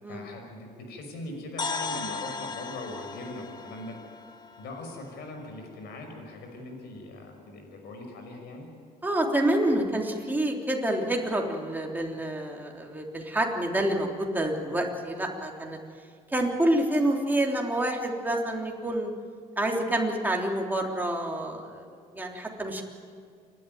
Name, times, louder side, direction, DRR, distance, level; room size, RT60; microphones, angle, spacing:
voice 1, 0.1-3.9 4.6-8.7, left 2 dB, 75° left, 3 dB, 5.7 m, -41 dB
sound 1, 1.6-5.5, left 4 dB, 25° left, 1.4 m, -37 dB
voice 2, 9.0-15.8 16.3-19.1 19.6-21.8 22.1-22.8, right 1 dB, 10° right, 0 dB, 3.4 m, -28 dB
28.5 x 12.5 x 9.4 m, 2.1 s
cardioid pair, 110°, 17 cm